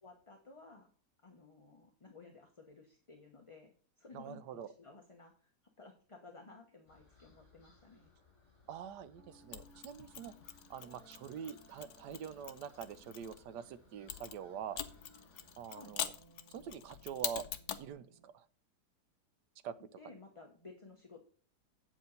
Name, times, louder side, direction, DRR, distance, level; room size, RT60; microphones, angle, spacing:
voice 1, 0.0-0.9 1.2-5.5 5.8-8.1 15.7-15.9 20.0-21.2, left 3 dB, 25° left, 2 dB, 0.9 m, -56 dB
voice 2, 4.1-4.7 8.7-10.3 10.7-14.8 15.6-16.1 16.5-17.4 17.8-18.4 19.6-19.8, right 8 dB, 80° right, 13 dB, 1.3 m, -45 dB
sound 1, 6.9-15.7, left 3 dB, 45° left, 3.7 m, -66 dB
sound 2, 9.2-18.2, right 2 dB, 50° right, 6.2 m, -64 dB
Mechanisms, 9.5-13.4 14.1-17.9, left 9 dB, 70° left, 1.3 m, -44 dB
8.6 x 7.8 x 4.0 m, 0.43 s
omnidirectional pair, 1.8 m